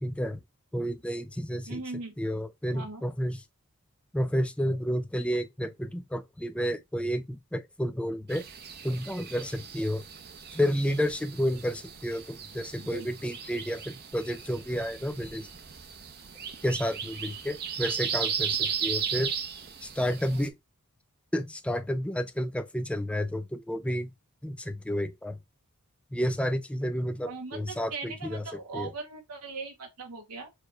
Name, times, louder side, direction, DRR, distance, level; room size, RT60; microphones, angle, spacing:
voice 1, 0.0-0.4 0.7-1.8 2.2-3.4 4.1-8.4 8.8-10.0 10.5-15.5 16.6-19.3 19.8-20.5 21.3-24.1 24.4-25.4 26.1-28.4 28.7-28.9, equal, 5° left, 0.3 m, -31 dB
voice 2, 1.7-2.1 2.7-3.0 12.8-13.1 20.3-20.4 27.2-30.5, right 3 dB, 80° right, 0.9 m, -39 dB
sound 1, 8.3-20.5, right 7 dB, 45° right, 0.7 m, -36 dB
4.8 x 2.3 x 4.4 m
head